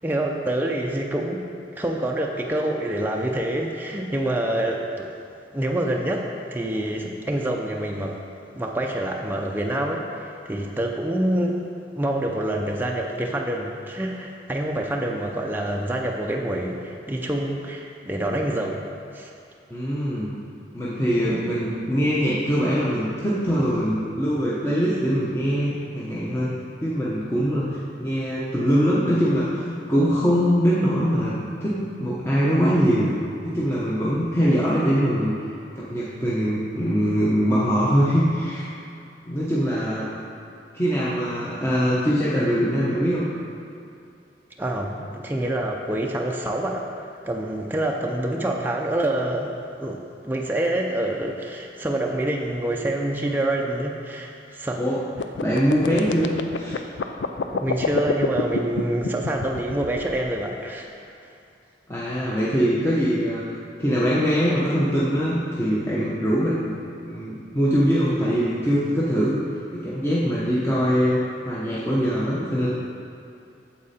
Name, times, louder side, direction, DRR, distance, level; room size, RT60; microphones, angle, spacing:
voice 1, 0.0-1.4 1.8-5.1 5.5-8.2 8.5-11.6 12.0-18.8 19.1-19.3 21.2-21.5 44.6-49.5 49.8-54.8 57.5-60.9, right 1 dB, 10° right, 0 dB, 0.5 m, -26 dB
voice 2, 19.7-20.3 20.7-26.5 26.8-33.1 33.4-35.5 35.7-38.8 39.2-40.0 40.7-43.3 54.8-55.0 55.4-56.8 61.9-63.4 63.8-66.7 67.0-69.4 69.7-71.2 71.5-72.7, equal, 15° left, -8 dB, 0.9 m, -22 dB
sound 1, 55.2-60.4, left 4 dB, 90° left, 0.5 m, -27 dB
8.5 x 7.5 x 4.2 m, 2.6 s
head